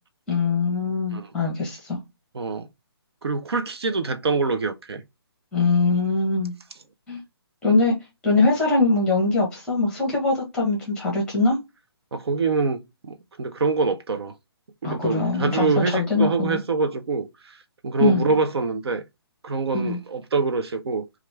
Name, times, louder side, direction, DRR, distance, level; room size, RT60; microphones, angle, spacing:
voice 1, 0.3-2.0 5.5-6.5 7.1-7.2 7.6-7.9 8.2-11.6 14.8-16.6 18.0-18.2 19.7-20.0, left 3 dB, 5° left, 0.9 m, -22 dB
voice 2, 2.3-2.7 3.2-5.0 12.1-14.3 14.8-17.5 17.8-19.0 19.4-21.1, right 4 dB, 80° right, 0.6 m, -25 dB
3.0 x 2.4 x 3.3 m
hypercardioid pair, 165°, 13 cm